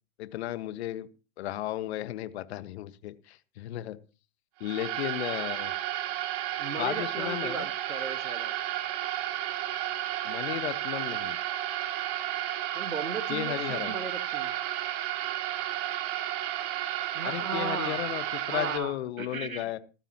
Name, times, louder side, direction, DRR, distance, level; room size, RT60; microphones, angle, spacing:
voice 1, 0.2-1.1 1.4-4.0 4.6-5.7 6.8-7.7 10.2-11.4 13.3-13.9 17.2-19.8, left 14 dB, 50° left, 1.6 m, -34 dB
sound 1, 4.6-18.8, right 13 dB, 45° right, 2.6 m, -32 dB
voice 2, 6.6-8.5 12.7-14.5 17.1-18.1 18.5-19.7, right 4 dB, 90° right, 2.0 m, -36 dB
18.0 x 15.0 x 3.0 m
figure-of-eight pair, 110°, 40 cm